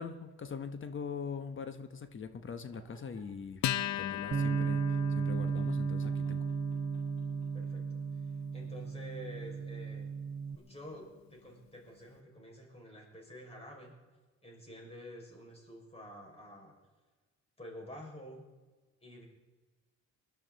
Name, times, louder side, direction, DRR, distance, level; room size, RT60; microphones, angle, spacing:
voice 1, 0.0-3.6 4.0-4.8 5.2-6.4, left 6 dB, 40° left, 10 dB, 1.1 m, -42 dB
sound 1, 2.5-3.3 3.8-5.2 5.5-7.7, left 1 dB, 85° left, 4.1 m, -63 dB
Acoustic guitar, 3.6-10.5, left 12 dB, 65° left, 0.7 m, -40 dB
Bass guitar, 4.3-10.6, right 6 dB, 25° right, 0.6 m, -34 dB
voice 2, 7.5-10.2 10.6-13.9 14.4-16.7 17.6-18.4 19.0-19.2, equal, 20° left, -1 dB, 5.7 m, -49 dB
21.5 x 11.5 x 4.0 m, 1.3 s
cardioid pair, 90°, 30 cm